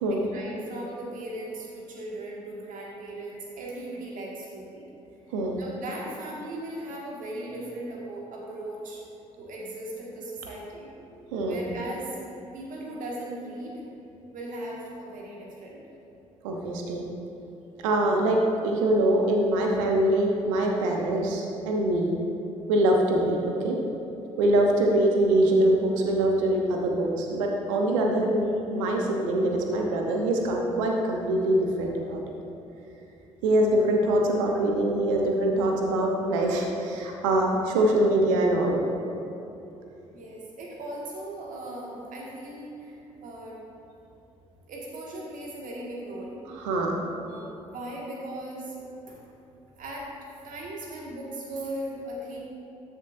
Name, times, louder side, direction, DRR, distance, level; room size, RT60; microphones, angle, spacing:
voice 1, 0.1-4.9 5.6-9.0 9.4-10.9 11.5-12.2 12.5-13.9 14.3-15.8 40.1-43.6 44.7-46.4 47.2-48.8 49.1-49.2 49.8-50.1 50.4-52.4, right 1 dB, 55° right, -3 dB, 1.9 m, -38 dB
voice 2, 16.4-17.0 17.8-22.1 22.7-23.8 24.4-28.5 28.7-32.2 33.4-38.8 46.6-47.0, right 1 dB, 70° right, 1 dB, 0.9 m, -24 dB
13.0 x 6.6 x 2.6 m, 2.9 s
figure-of-eight pair, 45°, 17 cm